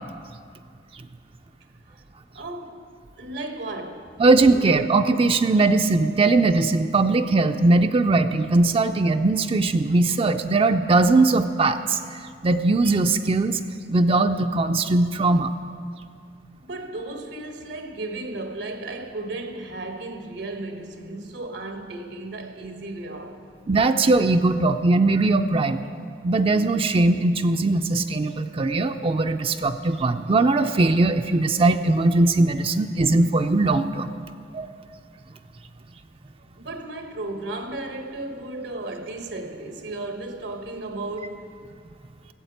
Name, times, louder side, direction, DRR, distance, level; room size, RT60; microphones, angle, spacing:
voice 1, 2.3-2.8 3.2-4.1 4.5-4.7 16.6-23.5 36.6-41.5, right 2 dB, 85° right, 1.2 m, -34 dB
voice 2, 4.2-12.0 12.4-13.6 13.9-15.5 23.7-25.8 26.2-34.1 34.5-34.7, right 2 dB, 30° right, 0.4 m, -20 dB
13.5 x 8.0 x 8.0 m
head